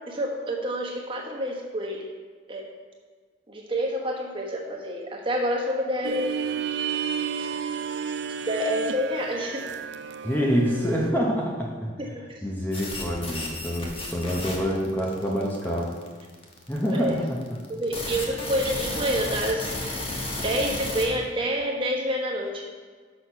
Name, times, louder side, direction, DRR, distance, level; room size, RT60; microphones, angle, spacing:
voice 1, 0.1-2.1 2.5-2.7 3.5-6.5 7.3-7.5 8.4-9.7 12.0-12.2 16.9-17.1 17.7-22.6, equal, 30° right, -2 dB, 1.3 m, -28 dB
sound 1, 6.0-11.1, right 7 dB, 70° right, 0.4 m, -32 dB
voice 2, 10.2-11.9 12.4-15.9 16.7-17.4, equal, 10° left, -2 dB, 0.8 m, -26 dB
sound 2, 12.7-21.1, left 2 dB, 30° left, 1.2 m, -33 dB
6.3 x 6.3 x 5.6 m, 1.5 s
head